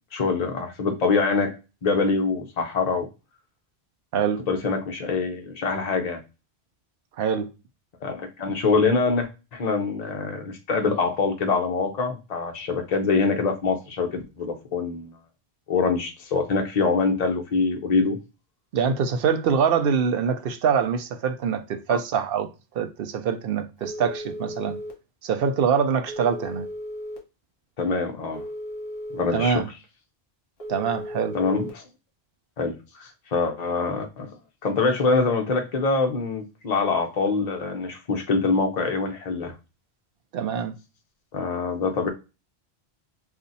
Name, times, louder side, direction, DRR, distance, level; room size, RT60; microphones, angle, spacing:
voice 1, 0.1-3.1 4.5-6.2 8.0-15.1 15.7-18.2 21.9-22.0 27.8-28.4 29.1-29.6 31.3-31.8 32.6-34.3 34.6-39.5 41.3-42.1, left 4 dB, 45° left, 0.8 m, -24 dB
voice 2, 7.2-7.5 18.7-22.5 22.7-24.8 25.2-26.7 29.3-29.7 30.7-31.4 40.3-40.7, right 7 dB, 65° right, 0.7 m, -24 dB
Telephone, 23.8-24.9 26.1-27.2 28.3-29.4 30.6-31.7, equal, 65° left, 1.2 m, -35 dB
2.7 x 2.5 x 3.9 m
omnidirectional pair, 1.1 m